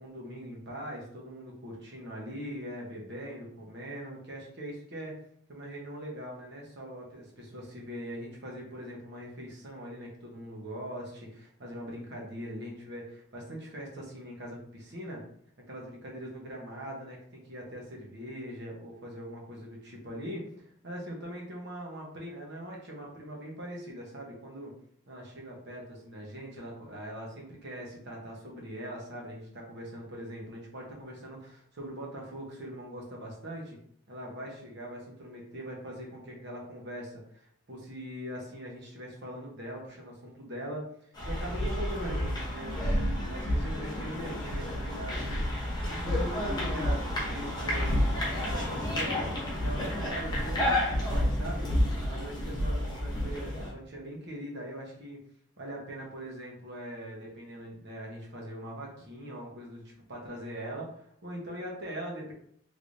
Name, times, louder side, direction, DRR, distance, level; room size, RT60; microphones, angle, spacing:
voice 1, 0.0-5.2 5.5-15.2 15.7-24.7 25.1-33.8 34.1-45.5 45.9-51.7 52.1-55.2 55.6-59.8 60.1-62.3, equal, 50° right, -2 dB, 1.0 m, -41 dB
sound 1, 41.2-53.7, left 1 dB, 20° left, 0.9 m, -30 dB
3.3 x 3.2 x 2.6 m, 0.65 s
head